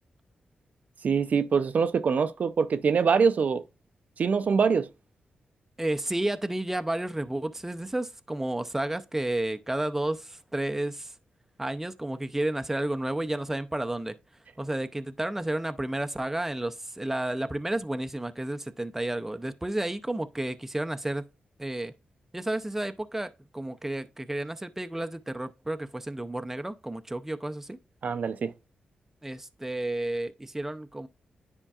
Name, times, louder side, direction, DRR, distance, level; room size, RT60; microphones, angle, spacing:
voice 1, 1.0-3.6 4.2-4.9 28.0-28.5, right 5 dB, 60° right, 0.5 m, -24 dB
voice 2, 5.8-11.2 11.6-14.2 14.6-21.2 21.6-21.9 22.3-27.8 29.2-31.1, right 1 dB, 10° right, 0.5 m, -31 dB
9.9 x 4.4 x 2.4 m
cardioid pair, 75°, 3 cm